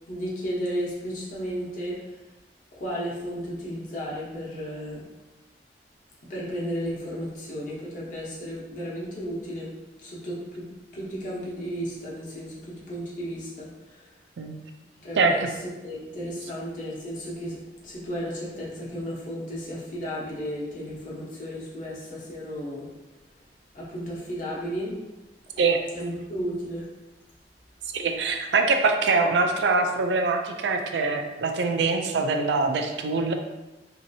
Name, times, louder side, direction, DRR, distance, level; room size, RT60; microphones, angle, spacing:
voice 1, 0.1-2.0 2.8-5.0 6.3-9.7 10.0-10.6 10.9-13.7 15.0-15.5 15.8-17.6 17.8-22.9 23.7-25.0 25.9-26.9, equal, 50° left, -6 dB, 0.9 m, -33 dB
voice 2, 15.2-15.5 25.6-25.8 27.9-33.3, right 4 dB, 75° right, 4 dB, 0.4 m, -23 dB
3.0 x 2.8 x 2.7 m, 1.0 s
head